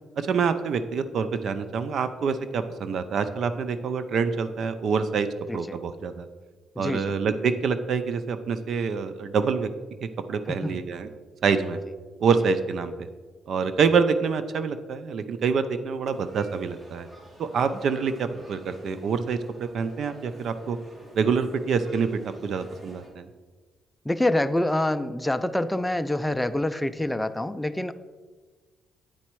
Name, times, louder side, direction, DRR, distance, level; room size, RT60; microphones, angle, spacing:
voice 1, 0.2-6.3 6.8-9.7 10.0-11.1 11.4-11.8 12.2-13.1 13.5-17.1 17.4-20.8 21.1-23.3, right 5 dB, 65° right, 11 dB, 0.5 m, -26 dB
voice 2, 6.8-7.1 10.5-10.8 24.1-27.9, left 1 dB, 5° left, 10 dB, 0.3 m, -26 dB
sound 1, 16.1-23.1, right 1 dB, 35° right, 2.1 m, -51 dB
8.9 x 4.1 x 4.6 m, 1.4 s
cardioid pair, 90°, 0 cm